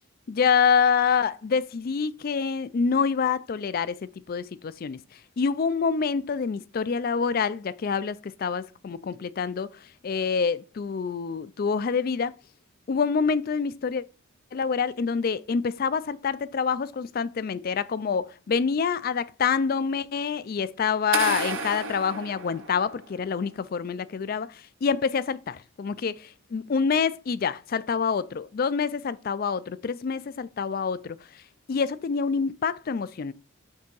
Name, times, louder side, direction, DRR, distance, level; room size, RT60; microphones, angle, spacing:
voice 1, 0.3-5.0 5.4-9.7 10.0-12.3 12.9-14.0 14.5-31.2 31.7-33.3, left 6 dB, 45° left, 0.3 m, -26 dB
sound 1, 21.1-23.2, right 4 dB, 70° right, 0.9 m, -32 dB
5.3 x 3.4 x 5.4 m
head